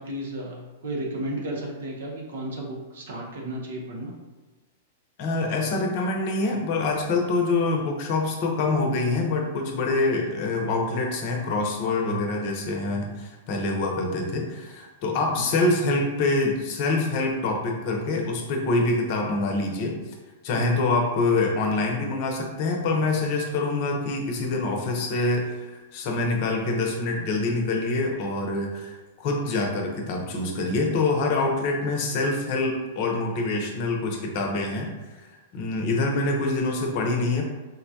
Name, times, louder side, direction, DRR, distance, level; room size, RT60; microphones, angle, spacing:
voice 1, 0.0-4.1 15.3-15.5 20.5-20.8, right 1 dB, 70° right, 0 dB, 0.7 m, -33 dB
voice 2, 5.2-20.0 20.4-34.9 35.2-37.4, left 3 dB, 50° left, 1 dB, 0.7 m, -25 dB
3.8 x 2.2 x 2.7 m, 1.2 s
hypercardioid pair, 110°, 0 cm